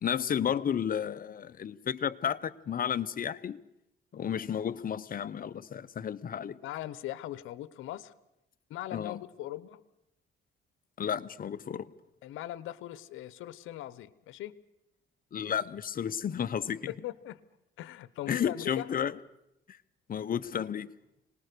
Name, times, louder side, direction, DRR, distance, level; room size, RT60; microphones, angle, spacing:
voice 1, 0.0-3.6 4.1-6.6 8.9-9.2 11.0-11.9 15.3-16.9 18.3-19.1 20.1-20.9, left 8 dB, 45° left, 0.8 m, -32 dB
voice 2, 6.6-8.1 8.7-9.8 12.2-14.6 16.9-17.4 17.8-18.9, left 14 dB, 90° left, 0.9 m, -40 dB
25.5 x 19.5 x 6.7 m
cardioid pair, 90°, 20 cm